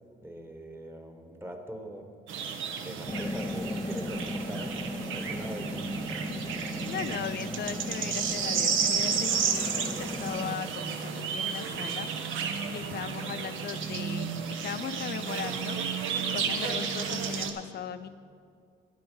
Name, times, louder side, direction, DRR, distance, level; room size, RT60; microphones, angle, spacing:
voice 1, 0.2-2.1 2.8-4.8 5.1-5.9, right 1 dB, 10° right, 5 dB, 1.1 m, -42 dB
sound 1, 2.3-17.5, right 6 dB, 80° right, 0.9 m, -32 dB
sound 2, 3.1-10.6, left 1 dB, 5° left, 0.6 m, -37 dB
voice 2, 6.8-14.3 14.6-18.1, left 8 dB, 55° left, 12 dB, 0.5 m, -38 dB
10.5 x 7.8 x 5.5 m, 2.2 s
cardioid pair, 90°, 20 cm